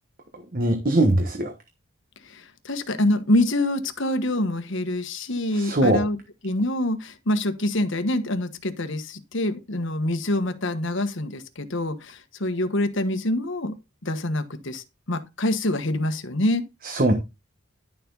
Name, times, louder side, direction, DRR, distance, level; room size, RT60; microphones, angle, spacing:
voice 1, 0.3-1.5 5.5-6.0 16.8-17.1, right 1 dB, 40° right, 1.3 m, -21 dB
voice 2, 2.2-6.2 6.4-13.8 14.0-16.6, left 1 dB, 55° left, 1.3 m, -26 dB
11.0 x 7.2 x 3.9 m
head